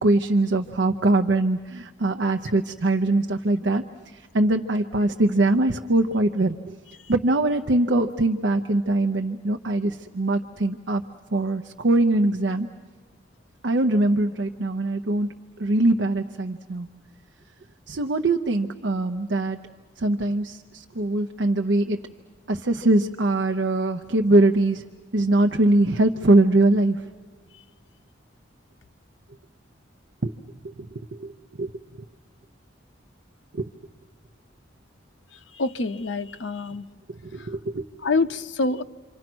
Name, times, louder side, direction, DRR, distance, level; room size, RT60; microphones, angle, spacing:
voice 1, 0.0-3.8 4.3-6.6 7.1-11.0 11.3-12.7 13.6-15.3 15.6-16.9 17.9-19.6 20.0-22.0 22.5-24.8 25.1-27.0 30.2-30.3 31.2-31.3 31.6-31.7 33.6-33.7 37.5-37.8, right 2 dB, 65° right, 5 dB, 0.7 m, -22 dB
voice 2, 35.6-36.9 38.0-38.8, left 3 dB, 75° left, 9 dB, 0.7 m, -26 dB
28.5 x 25.5 x 6.1 m, 1.5 s
head